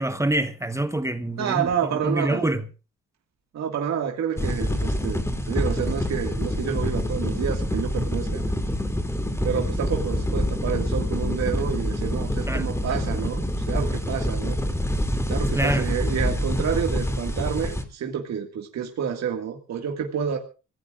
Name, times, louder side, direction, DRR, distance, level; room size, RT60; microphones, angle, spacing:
voice 1, 0.0-2.6 12.5-12.7 15.5-15.9, right 1 dB, 10° right, 1.1 m, -26 dB
voice 2, 1.4-2.5 3.5-5.2 5.5-8.4 9.4-14.6 15.3-20.4, right 8 dB, 60° right, 2.0 m, -29 dB
sound 1, 4.4-17.8, left 1 dB, 10° left, 2.6 m, -26 dB
26.0 x 16.5 x 2.5 m
cardioid pair, 90°, 30 cm